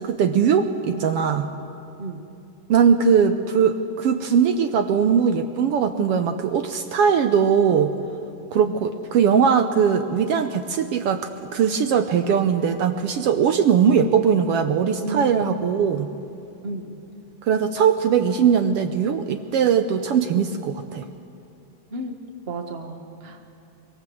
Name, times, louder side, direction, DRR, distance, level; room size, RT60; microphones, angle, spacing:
voice 1, 0.0-1.5 2.7-7.9 8.5-16.1 17.5-21.0, right 7 dB, 70° right, 8 dB, 1.4 m, -20 dB
voice 2, 15.0-15.6 16.6-16.9 21.9-22.1 22.5-23.4, right 2 dB, 55° right, 4 dB, 0.6 m, -33 dB
24.0 x 22.0 x 7.7 m, 2.7 s
omnidirectional pair, 3.4 m